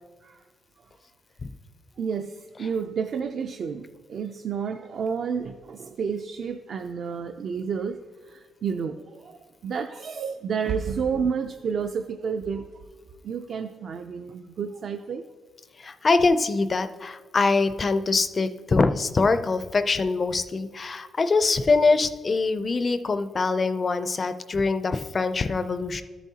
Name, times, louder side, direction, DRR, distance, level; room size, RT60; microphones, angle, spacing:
voice 1, 2.0-8.0 8.2-12.7 13.2-15.2, right 6 dB, 50° right, 6 dB, 0.3 m, -30 dB
voice 2, 15.8-26.0, left 3 dB, 25° left, 10 dB, 0.4 m, -23 dB
13.5 x 7.1 x 2.8 m, 1.4 s
wide cardioid pair, 170°, 0 cm